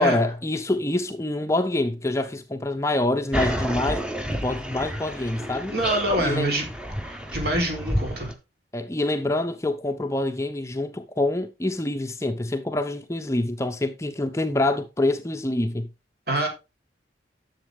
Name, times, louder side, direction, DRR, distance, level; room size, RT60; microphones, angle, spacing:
voice 1, 0.0-5.7 6.2-6.5 8.7-15.9, left 2 dB, 15° left, 0.7 m, -26 dB
sound 1, 3.3-8.3, equal, 5° right, 1.0 m, -30 dB
voice 2, 5.7-6.7 7.0-8.3 16.3-16.5, right 1 dB, 55° right, 3.8 m, -26 dB
11.0 x 7.3 x 3.6 m
head